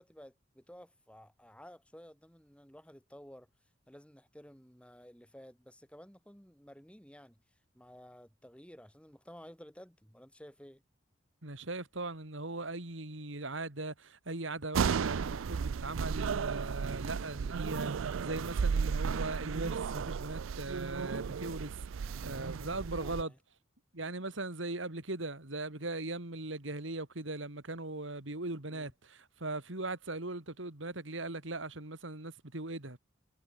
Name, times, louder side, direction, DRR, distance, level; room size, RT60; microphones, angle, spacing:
voice 1, 0.0-3.5 3.9-7.4 7.7-10.8 22.0-23.4 28.7-28.9, equal, 5° left, 5.7 m, -54 dB
voice 2, 11.4-23.3 23.9-33.0, right 2 dB, 70° right, 2.8 m, -39 dB
sound 1, 14.7-23.2, right 6 dB, 90° right, 0.4 m, -34 dB
head